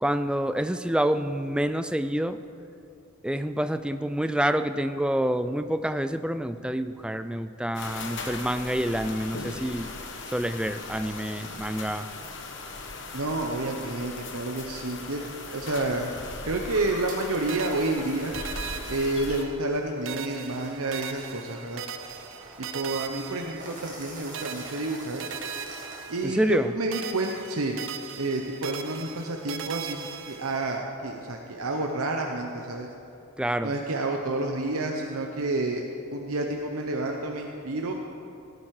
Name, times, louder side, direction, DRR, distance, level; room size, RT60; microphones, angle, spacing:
voice 1, 0.0-2.4 3.2-9.9 10.3-12.1 26.2-26.7 33.4-33.7, right 1 dB, 5° right, 10 dB, 0.3 m, -27 dB
sound 1, 7.7-19.4, left 3 dB, 55° left, 1.3 m, -38 dB
voice 2, 13.1-15.2 15.5-16.1 16.5-18.3 18.9-21.8 22.6-25.2 26.1-27.8 28.2-32.9 33.6-35.8 36.1-38.0, right 2 dB, 80° right, 2 dB, 0.9 m, -29 dB
sound 2, 17.1-17.2 17.7-26.5, right 2 dB, 35° right, 2.8 m, -47 dB
sound 3, 17.5-19.8 20.0-24.0 24.3-26.6 26.9-30.8, right 7 dB, 60° right, 0.7 m, -39 dB
17.5 x 11.0 x 4.8 m, 2.7 s
head